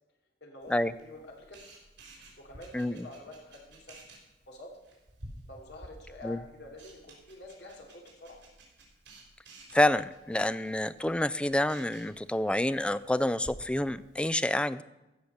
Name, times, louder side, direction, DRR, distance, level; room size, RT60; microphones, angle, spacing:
voice 1, 0.4-1.6 2.1-4.0 4.5-4.7 5.5-8.4, left 2 dB, 65° left, 0 dB, 2.8 m, -48 dB
Camera, 0.6-14.3, right 1 dB, 75° right, 4.1 m, -53 dB
voice 2, 9.7-14.8, left 1 dB, 5° left, 15 dB, 0.3 m, -28 dB
15.0 x 5.8 x 6.5 m, 1.0 s
head